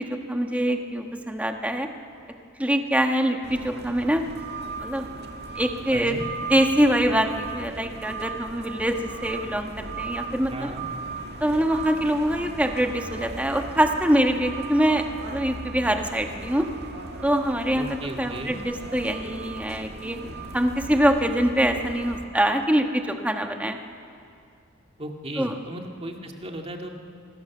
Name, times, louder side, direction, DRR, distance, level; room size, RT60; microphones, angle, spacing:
voice 1, 0.0-1.9 2.6-4.2 4.8-5.1 5.6-6.2 6.5-10.7 11.4-16.7 17.2-17.9 18.2-20.2 20.5-23.8 25.4-25.5, equal, 5° right, 4 dB, 1.2 m, -24 dB
sound 1, 3.4-22.2, right 3 dB, 55° right, 1.8 m, -37 dB
voice 2, 5.9-6.2 10.5-10.9 17.7-18.6 25.0-26.9, right 1 dB, 30° right, 2 dB, 2.0 m, -35 dB
25.5 x 19.0 x 7.1 m, 2.4 s
head